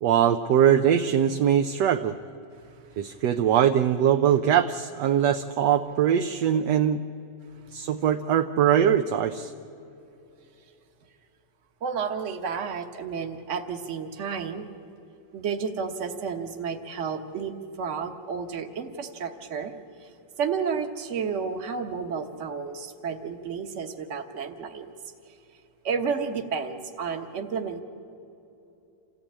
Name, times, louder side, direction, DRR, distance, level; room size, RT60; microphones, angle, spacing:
voice 1, 0.0-2.2 3.0-7.0 7.7-9.5, right 9 dB, 75° right, 7 dB, 1.3 m, -22 dB
voice 2, 2.5-3.2 7.6-7.7 11.8-14.7 15.3-20.1 20.4-24.9 25.3-25.4 25.8-27.8, right 6 dB, 45° right, 6 dB, 1.5 m, -32 dB
27.5 x 15.0 x 8.7 m, 2.8 s
omnidirectional pair, 1.9 m